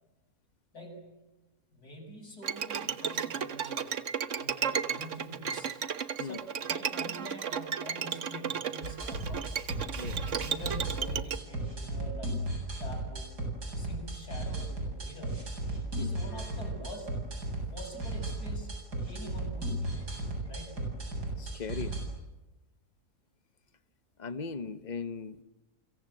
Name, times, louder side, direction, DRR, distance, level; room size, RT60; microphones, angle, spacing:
voice 1, 0.7-1.1 1.7-3.9 4.3-5.8 6.1-9.5 10.1-12.4 12.8-13.4 13.7-15.5 16.0-17.1 17.7-20.9, equal, 65° left, 2 dB, 8.1 m, -46 dB
Bowed string instrument, 2.4-11.4, right 7 dB, 50° right, 1.3 m, -34 dB
sound 1, 8.8-22.0, right 1 dB, 75° right, 8.4 m, -35 dB
voice 2, 21.4-22.0 24.2-25.4, left 5 dB, 30° left, 13 dB, 1.1 m, -38 dB
29.5 x 25.0 x 7.8 m, 1.1 s
omnidirectional pair, 1.7 m